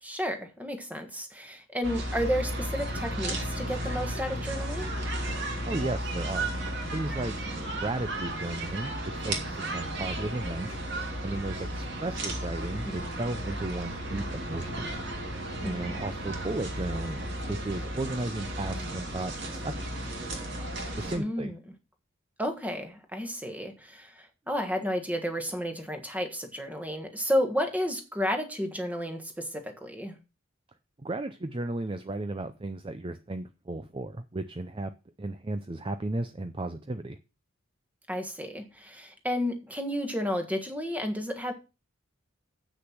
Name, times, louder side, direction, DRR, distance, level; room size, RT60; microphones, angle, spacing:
voice 1, 0.0-4.9 12.8-13.2 15.6-16.0 21.1-21.6 22.4-30.2 38.1-41.5, equal, 5° right, 1.5 m, -32 dB
sound 1, 1.8-21.2, right 1 dB, 55° right, 2.7 m, -34 dB
voice 2, 5.6-6.5 6.9-7.4 7.8-10.8 11.2-14.9 15.6-19.7 21.0-21.5 31.0-34.9 35.2-37.2, right 2 dB, 25° right, 0.5 m, -34 dB
8.1 x 6.4 x 6.0 m
head